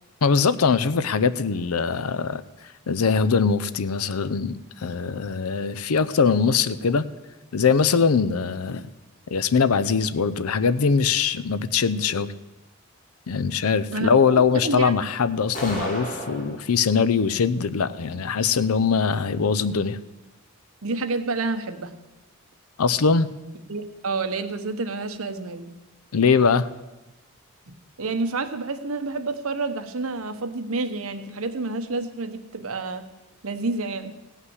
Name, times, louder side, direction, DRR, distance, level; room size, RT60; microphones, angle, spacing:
voice 1, 0.2-2.4 2.9-7.0 7.5-8.8 9.3-12.3 13.3-20.0 22.8-23.3 26.1-26.7, left 5 dB, 85° left, 14 dB, 0.6 m, -22 dB
voice 2, 13.9-14.9 20.8-22.0 23.7-25.7 27.7-33.1 33.4-34.1, right 3 dB, 75° right, 8 dB, 1.0 m, -29 dB
sound 1, 15.5-16.6, right 1 dB, 35° left, 2.8 m, -31 dB
16.0 x 5.7 x 8.0 m, 1.1 s
head